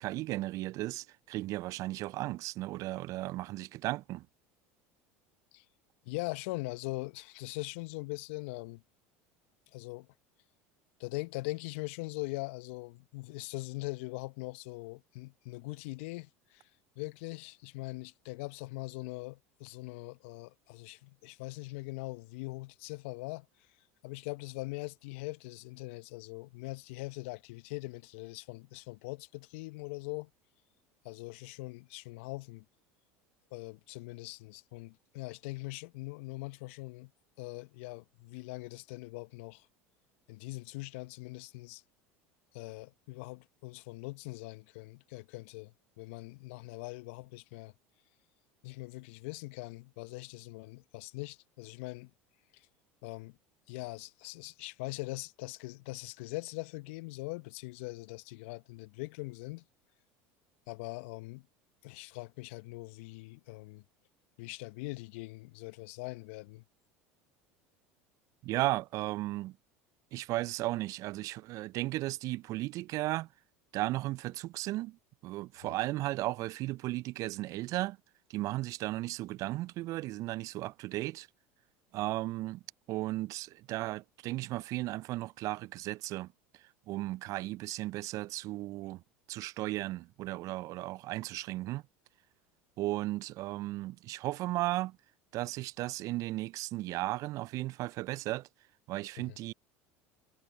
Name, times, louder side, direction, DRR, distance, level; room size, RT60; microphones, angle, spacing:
voice 1, 0.0-4.3 68.4-69.6 70.1-73.3 73.7-75.0 75.2-78.0 78.3-81.3 81.9-82.6 82.9-89.0 89.3-91.8 92.8-95.0 95.3-98.5 98.9-99.5, right 17 dB, 50° right, 0.3 m, -35 dB
voice 2, 6.0-8.8 9.7-10.1 11.0-16.7 17.0-23.5 24.0-30.3 31.0-32.6 33.5-37.1 37.4-39.7 40.3-41.8 42.5-47.7 48.6-52.1 52.5-52.7 53.0-53.4 53.7-59.6 60.7-61.5 61.8-63.8 64.4-66.6 99.2-99.4, left 24 dB, 65° left, 0.9 m, -42 dB
hypercardioid pair, 75°, 7 cm